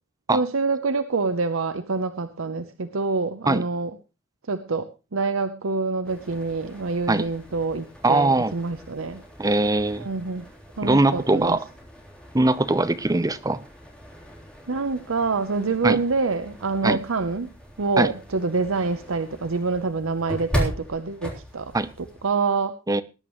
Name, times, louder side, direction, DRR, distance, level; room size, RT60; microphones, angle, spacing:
voice 1, 0.3-3.9 4.5-9.2 10.0-10.5 10.8-11.6 14.7-17.5 17.8-21.7 22.0-22.7, right 4 dB, 85° right, 0.8 m, -26 dB
sound 1, 6.0-22.3, equal, 5° left, 3.6 m, -38 dB
voice 2, 8.0-8.5 9.4-10.1 10.8-11.6 12.3-13.6 15.8-16.0 16.8-17.0 18.0-18.1 21.7-21.9 22.9-23.0, right 2 dB, 20° right, 0.7 m, -21 dB
20.0 x 10.5 x 3.1 m
head